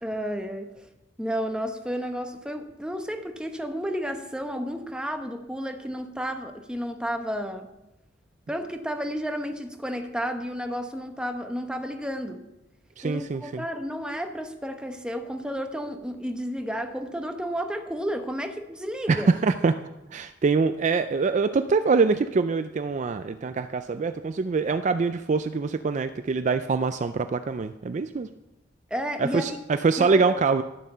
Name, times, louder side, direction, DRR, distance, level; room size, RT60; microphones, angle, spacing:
voice 1, 0.0-0.8 1.2-7.7 8.5-12.4 13.0-19.3 28.9-29.6 30.0-30.4, equal, 5° right, 5 dB, 0.9 m, -32 dB
voice 2, 13.0-13.6 19.1-19.7 20.1-28.3 29.2-30.6, right 4 dB, 40° right, 10 dB, 0.3 m, -24 dB
12.0 x 7.4 x 5.6 m, 0.95 s
head